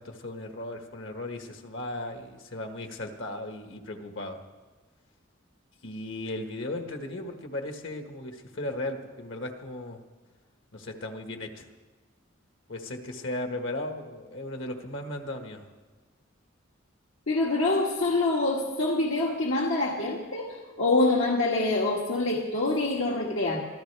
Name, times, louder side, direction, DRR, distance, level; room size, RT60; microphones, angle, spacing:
voice 1, 0.0-4.4 5.8-10.0 10.7-11.7 12.7-15.6, left 1 dB, 65° left, 4 dB, 1.5 m, -36 dB
voice 2, 17.3-20.5 20.8-23.6, left 2 dB, 85° left, -3 dB, 1.9 m, -25 dB
24.5 x 15.0 x 3.4 m, 1.4 s
head